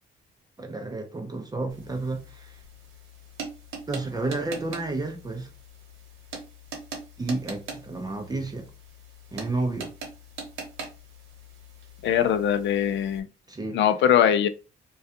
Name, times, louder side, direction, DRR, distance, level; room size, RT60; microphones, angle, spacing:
voice 1, 0.6-2.6 3.9-5.5 7.2-8.7 9.3-9.9 13.5-13.8, right 2 dB, 20° right, 0.5 m, -31 dB
sound 1, 1.7-13.2, right 3 dB, 85° right, 0.9 m, -42 dB
voice 2, 12.0-13.3 13.7-14.5, left 9 dB, 65° left, 0.4 m, -21 dB
2.3 x 2.2 x 2.7 m
cardioid pair, 90°, 20 cm